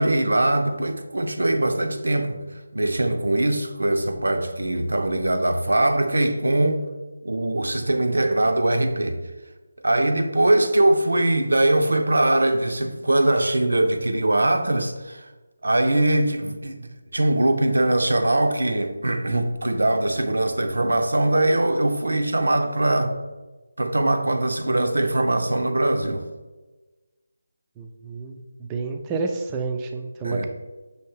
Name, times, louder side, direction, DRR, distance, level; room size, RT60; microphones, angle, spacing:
voice 1, 0.0-2.4 2.7-6.8 7.2-9.2 9.8-15.2 15.6-16.8 17.1-23.2 23.8-26.2 30.2-30.5, right 1 dB, 90° right, 0.6 m, -21 dB
voice 2, 27.8-30.5, right 4 dB, 15° right, 0.3 m, -30 dB
5.8 x 2.8 x 3.1 m
figure-of-eight pair, 165°, 0 cm